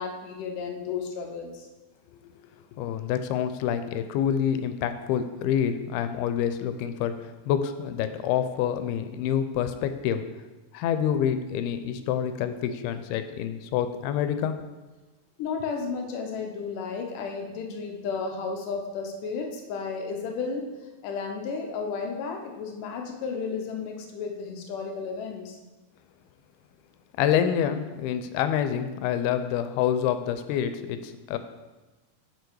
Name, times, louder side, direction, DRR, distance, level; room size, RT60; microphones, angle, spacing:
voice 1, 0.0-1.7 15.4-20.6 21.0-25.6, left 5 dB, 70° left, 2 dB, 2.2 m, -33 dB
voice 2, 2.8-10.2 10.7-14.6 27.2-31.4, left 9 dB, 90° left, 10 dB, 2.5 m, -27 dB
7.0 x 6.3 x 4.7 m, 1.2 s
omnidirectional pair, 4.4 m